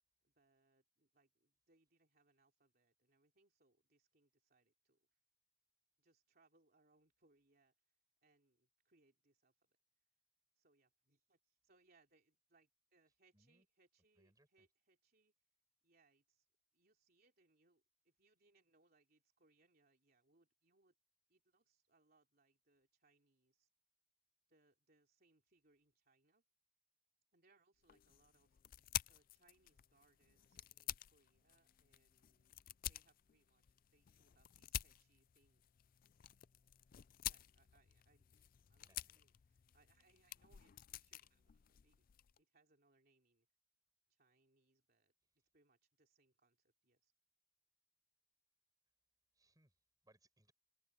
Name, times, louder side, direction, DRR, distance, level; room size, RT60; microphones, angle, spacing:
voice 1, 0.2-5.2 6.0-9.8 10.5-15.3 15.8-16.5 16.7-20.9 21.3-23.7 24.5-26.4 27.3-28.6 29.1-32.6 32.9-35.6 37.2-38.4 38.7-42.1 42.4-43.5 44.1-45.1 45.5-47.1, right 3 dB, 50° right, 3.3 m, -77 dB
voice 2, 13.3-13.7 14.2-14.7 38.8-39.2 49.3-50.5, right 1 dB, 20° right, 7.7 m, -74 dB
sound 1, 27.8-42.4, left 12 dB, 45° left, 0.4 m, -50 dB
head